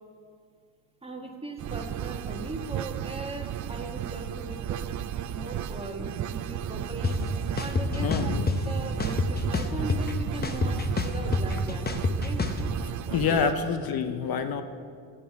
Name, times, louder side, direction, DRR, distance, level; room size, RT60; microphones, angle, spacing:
voice 1, 1.0-7.2 7.6-8.3 8.6-12.4 13.0-13.4, right 2 dB, 15° right, 2 dB, 1.5 m, -39 dB
sound 1, 1.6-13.5, right 10 dB, 45° right, 0.4 m, -34 dB
sound 2, 7.0-7.1 7.6-8.6 9.0-10.1 10.4-12.6, left 4 dB, 25° left, 0.9 m, -27 dB
voice 2, 8.0-8.6 13.1-14.6, left 6 dB, 60° left, 9 dB, 0.8 m, -27 dB
8.3 x 7.5 x 8.0 m, 2.1 s
cardioid pair, 85°, 42 cm